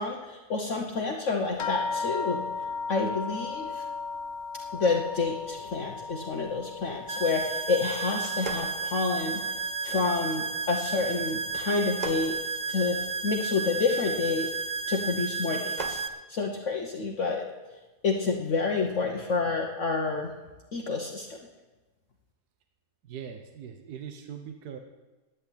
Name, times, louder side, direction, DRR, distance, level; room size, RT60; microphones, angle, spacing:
voice 1, 0.0-2.4 2.9-3.8 4.7-12.4 12.7-14.5 14.9-16.0 16.3-17.5 18.0-20.3 20.7-21.4, left 4 dB, 55° left, 1 dB, 1.3 m, -29 dB
sound 1, 1.6-10.4 10.7-11.6 12.4-12.5 12.9-13.0, left 4 dB, 75° left, 0.4 m, -37 dB
sound 2, 7.1-16.1, right 4 dB, 55° right, 0.5 m, -32 dB
sound 3, 8.2-9.6 11.7-13.3 15.4-16.1, right 3 dB, 30° right, 1.0 m, -39 dB
voice 2, 23.0-24.8, right 8 dB, 75° right, 5 dB, 1.5 m, -41 dB
11.0 x 9.2 x 8.4 m, 1.2 s
omnidirectional pair, 1.7 m